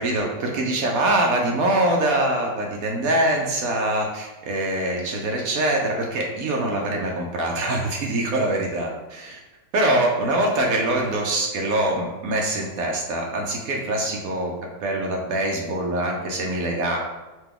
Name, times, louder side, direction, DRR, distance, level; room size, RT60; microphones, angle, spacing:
voice 1, 0.0-9.4 9.7-14.5 14.8-17.0, right 1 dB, 75° right, 0 dB, 0.8 m, -24 dB
5.7 x 2.2 x 3.7 m, 1.1 s
omnidirectional pair, 2.2 m